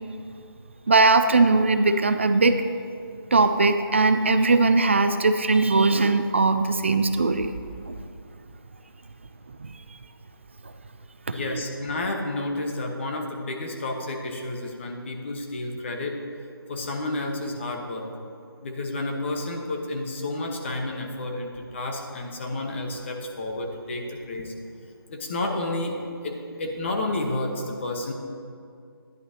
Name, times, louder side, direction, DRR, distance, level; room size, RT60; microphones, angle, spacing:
voice 1, 0.9-2.6 3.3-7.5 7.9-8.0 9.6-9.7 11.3-11.6, right 3 dB, 30° right, 9 dB, 0.3 m, -20 dB
voice 2, 11.3-16.2 16.7-18.1 18.6-24.5 25.1-26.0 26.2-28.1, left 2 dB, 30° left, 2 dB, 1.1 m, -30 dB
13.0 x 10.5 x 2.8 m, 2.4 s
figure-of-eight pair, 165°, 13 cm